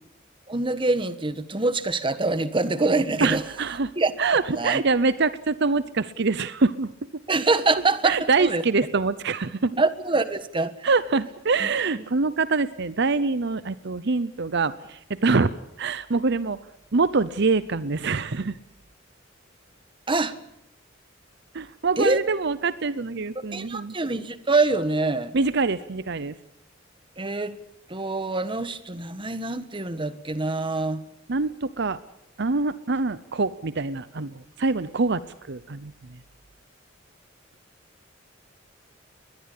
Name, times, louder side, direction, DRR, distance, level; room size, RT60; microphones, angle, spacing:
voice 1, 0.5-3.4 4.0-4.1 4.5-4.8 7.3-8.6 9.8-10.9 20.1-20.4 22.0-22.2 23.5-25.4 27.2-27.6 27.9-31.0, right 3 dB, 25° right, 12 dB, 1.4 m, -25 dB
voice 2, 3.2-3.9 4.2-7.2 8.0-9.8 10.8-15.5 15.8-16.6 16.9-18.6 21.5-23.9 25.3-26.4 31.3-32.0 32.4-35.9, right 4 dB, 60° right, 15 dB, 0.8 m, -25 dB
22.0 x 20.5 x 8.5 m, 0.78 s
head